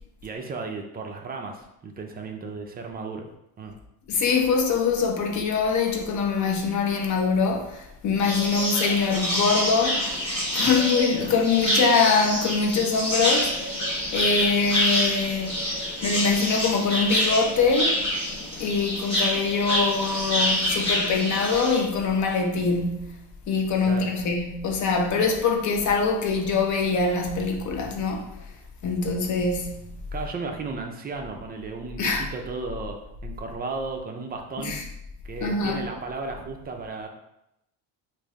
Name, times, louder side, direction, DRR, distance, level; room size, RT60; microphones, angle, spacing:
voice 1, 0.2-3.3 3.6-3.7 10.6-10.8 11.2-11.4 23.9-24.1 30.1-33.0 33.2-34.8 35.2-37.1, right 4 dB, 25° right, 0.4 m, -34 dB
voice 2, 4.1-10.1 10.5-13.6 14.1-15.5 16.0-18.0 18.6-23.1 23.5-28.3 28.8-29.9 32.0-32.2 34.6-34.8 35.4-35.8, left 4 dB, 45° left, 0.7 m, -23 dB
sound 1, 8.2-21.8, equal, 15° left, 1.4 m, -27 dB
3.2 x 2.6 x 3.5 m
cardioid pair, 120°, 42 cm